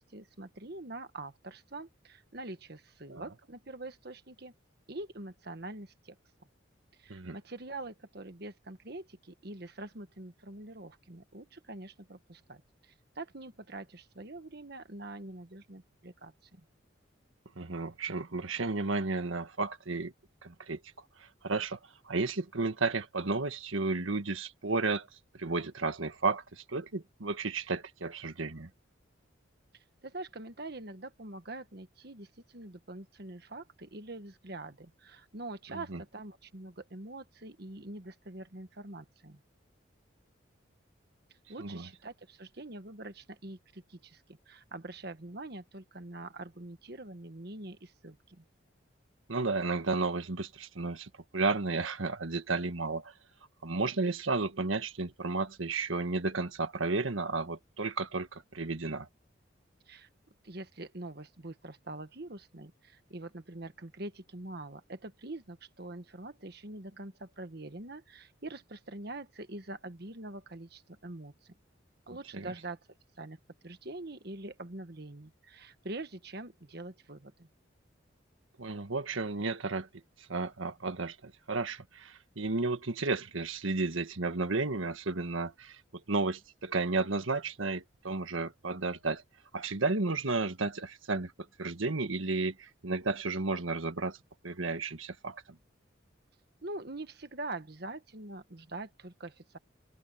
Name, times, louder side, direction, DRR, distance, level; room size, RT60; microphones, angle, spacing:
voice 1, 0.0-4.5 4.9-6.2 7.0-16.6 29.7-39.4 41.5-48.4 59.9-60.1 60.4-71.5 72.1-72.8 73.2-77.5 96.6-99.6, right 2 dB, 55° right, 1.5 m, -44 dB
voice 2, 17.6-20.1 20.4-20.8 21.2-21.8 22.0-25.1 25.4-28.7 35.9-36.0 41.6-41.9 49.3-53.1 53.6-59.1 72.3-72.5 78.6-79.9 80.2-85.8 86.1-89.2 89.5-91.3 91.6-94.2 94.4-95.4, right 3 dB, 90° right, 1.5 m, -33 dB
open air
head